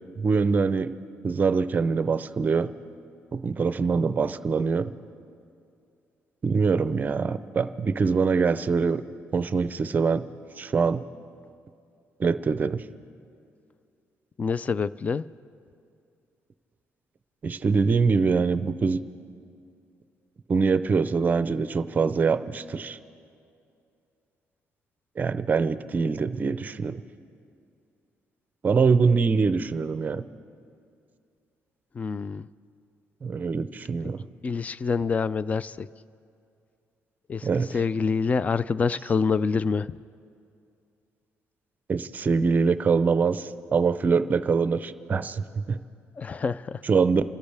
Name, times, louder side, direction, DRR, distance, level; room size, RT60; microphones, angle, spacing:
voice 1, 0.2-0.9 1.2-2.7 3.3-4.9 6.4-9.0 9.3-10.2 10.6-11.0 12.2-12.8 17.4-19.0 20.5-23.0 25.2-27.0 28.6-30.2 33.2-34.2 37.4-37.7 41.9-45.8 46.9-47.2, right 5 dB, 30° right, 13 dB, 0.6 m, -24 dB
voice 2, 14.4-15.3 31.9-32.5 34.4-35.9 37.3-40.0 46.2-46.8, left 5 dB, 30° left, 18 dB, 0.3 m, -26 dB
28.0 x 13.5 x 3.4 m, 2.5 s
cardioid pair, 120°, 5 cm